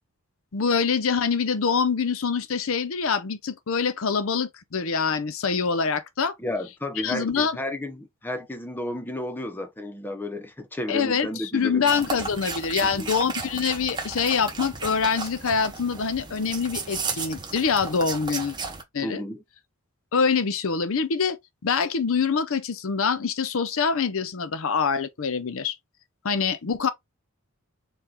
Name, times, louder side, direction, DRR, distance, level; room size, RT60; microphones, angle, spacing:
voice 1, 0.5-6.3 7.0-7.5 10.9-18.6 18.9-19.2 20.1-25.7 26.2-26.9, left 5 dB, 60° left, 0.6 m, -25 dB
voice 2, 6.4-11.8 12.8-13.1 19.0-19.4, left 1 dB, 10° left, 0.6 m, -32 dB
sound 1, 11.9-18.8, right 4 dB, 20° right, 0.8 m, -34 dB
4.7 x 2.3 x 3.8 m
head